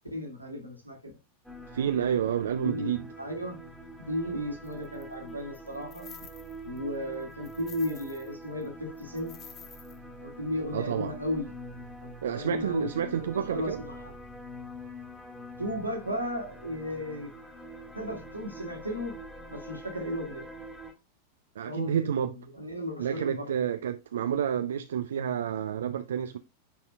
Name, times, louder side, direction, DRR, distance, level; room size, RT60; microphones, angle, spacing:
voice 1, 0.1-1.0 2.6-2.9 3.2-3.6 4.0-6.1 6.6-9.3 10.2-11.5 12.3-14.1 15.6-17.3 17.9-19.1 19.5-20.4 21.7-22.3 22.5-23.5, left 1 dB, 85° right, 2.1 m, -35 dB
sound 1, 1.4-20.9, equal, ahead, 1.7 m, -45 dB
voice 2, 1.7-3.0 10.7-11.2 12.2-13.8 21.6-22.4 23.0-26.4, right 9 dB, 65° right, 0.4 m, -29 dB
sound 2, 4.7-5.0 5.5-6.8 7.1-8.3 8.6-8.7 9.0-10.0, left 7 dB, 30° left, 1.1 m, -50 dB
10.0 x 4.3 x 2.3 m
figure-of-eight pair, 90°, 0 cm